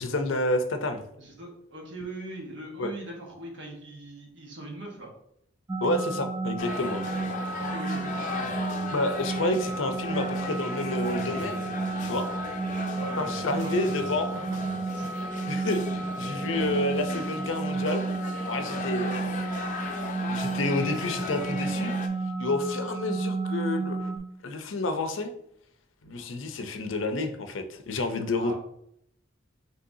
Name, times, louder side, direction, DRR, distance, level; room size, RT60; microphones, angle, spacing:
voice 1, 0.0-1.0 2.8-2.9 5.8-7.0 8.9-11.7 12.0-12.3 13.2-14.3 15.5-15.8 16.2-18.1 18.5-19.4 20.3-21.9 22.4-24.1 24.4-25.3 26.0-28.5, left 2 dB, 85° left, 7 dB, 0.6 m, -29 dB
voice 2, 1.2-5.1 7.0-7.3 7.6-8.7 12.9-15.1 28.4-28.6, right 1 dB, 70° right, -1 dB, 1.4 m, -41 dB
sound 1, 5.7-24.2, right 3 dB, 15° right, 0.3 m, -32 dB
sound 2, 6.6-22.1, left 4 dB, 40° left, 0.5 m, -38 dB
sound 3, 6.7-17.2, left 1 dB, 15° left, 0.8 m, -47 dB
5.4 x 3.3 x 2.7 m, 0.71 s
head